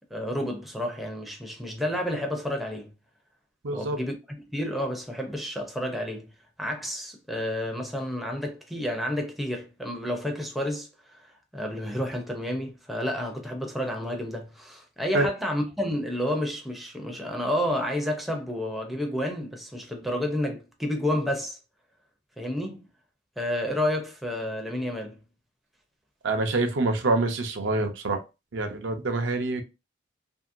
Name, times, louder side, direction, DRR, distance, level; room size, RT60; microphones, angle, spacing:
voice 1, 0.1-2.9 3.7-4.1 4.5-6.3 6.6-21.6 22.4-22.9 23.4-25.2, left 1 dB, ahead, 0.5 m, -30 dB
voice 2, 3.6-4.0 15.1-15.3 26.2-28.2 28.5-29.6, right 2 dB, 65° right, 0.6 m, -26 dB
2.8 x 2.7 x 2.5 m
head